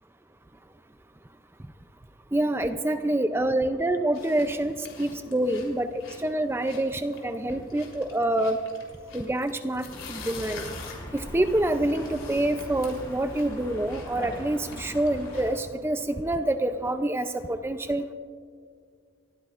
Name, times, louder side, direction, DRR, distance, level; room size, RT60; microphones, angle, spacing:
voice 1, 2.3-8.6 9.1-10.6 11.1-18.0, right 1 dB, 10° right, 9 dB, 0.4 m, -27 dB
sound 1, 4.1-15.5, left 3 dB, 75° left, 3.5 m, -45 dB
sound 2, 9.9-15.5, equal, 20° left, 4.1 m, -42 dB
29.0 x 14.5 x 2.5 m, 2.1 s
head